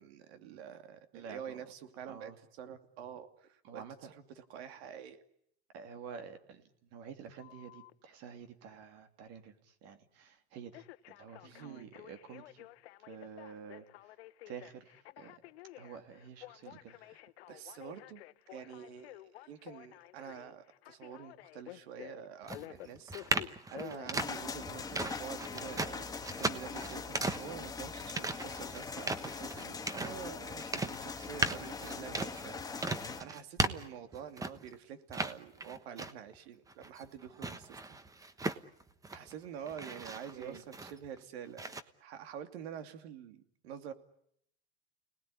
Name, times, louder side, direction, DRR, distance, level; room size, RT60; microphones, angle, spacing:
voice 1, 0.0-2.3 2.6-5.2 11.4-11.9 16.7-17.2 17.5-18.2 18.5-38.0 39.1-43.9, right 8 dB, 75° right, 9 dB, 2.7 m, -47 dB
voice 2, 1.1-1.6 2.1-2.4 3.6-4.1 5.7-12.7 13.1-14.1 14.5-15.4 15.8-17.0 40.3-40.6, right 7 dB, 50° right, 7 dB, 3.0 m, -49 dB
Telephone, 7.4-7.9 10.7-24.9 25.4-25.9, left 17 dB, 80° left, 1.0 m, -51 dB
sound 1, 22.4-34.7 35.1-36.4 36.7-39.3 39.7-41.2 41.6-41.8, right 3 dB, 10° right, 1.2 m, -37 dB
sound 2, 24.2-33.2, left 4 dB, 10° left, 1.6 m, -42 dB
29.5 x 19.5 x 10.0 m, 0.73 s
supercardioid pair, 135°, 32 cm